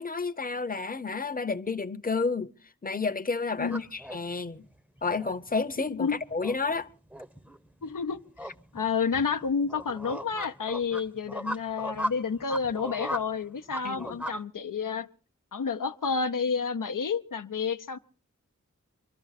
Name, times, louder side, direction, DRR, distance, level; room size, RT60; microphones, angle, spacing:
voice 1, 0.0-2.5 2.8-4.6 5.0-6.9 13.8-14.2, left 4 dB, 25° left, 0.8 m, -30 dB
sound 1, 3.6-14.4, equal, 5° right, 0.8 m, -38 dB
voice 2, 5.8-6.2 7.8-15.1 15.5-18.0, left 5 dB, 80° left, 0.7 m, -30 dB
24.5 x 13.0 x 4.1 m
wide cardioid pair, 45°, 32 cm